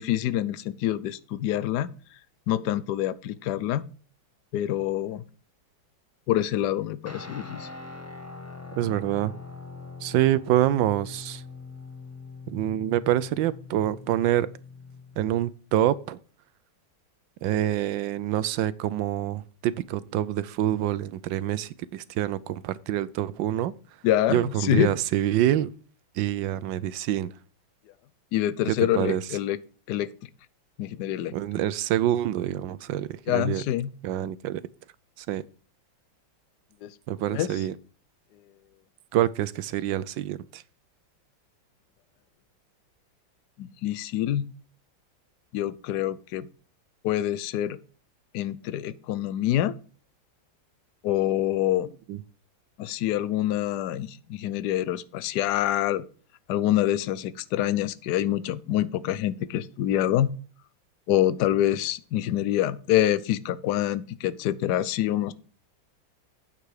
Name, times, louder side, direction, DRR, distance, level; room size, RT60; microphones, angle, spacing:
voice 1, 0.0-1.9 2.5-3.8 4.5-5.2 6.3-7.7 24.0-24.9 28.3-29.6 29.9-30.1 30.8-31.3 33.3-33.9 36.8-36.9 37.3-37.5 43.6-44.5 45.5-46.5 47.0-47.8 48.3-49.7 51.0-51.9 52.8-56.0 56.5-60.3 61.1-65.3, left 12 dB, 65° left, 1.1 m, -26 dB
Guitar, 7.1-15.2, left 3 dB, 10° left, 0.8 m, -42 dB
voice 2, 8.8-9.3 10.0-11.4 12.5-14.5 15.2-16.2 17.4-23.7 24.3-25.7 26.2-27.3 28.7-29.2 31.3-33.6 34.0-34.6 35.2-35.4 37.1-37.7 39.1-40.6 52.1-52.2, right 12 dB, 75° right, 1.3 m, -26 dB
9.2 x 7.1 x 4.8 m
omnidirectional pair, 2.2 m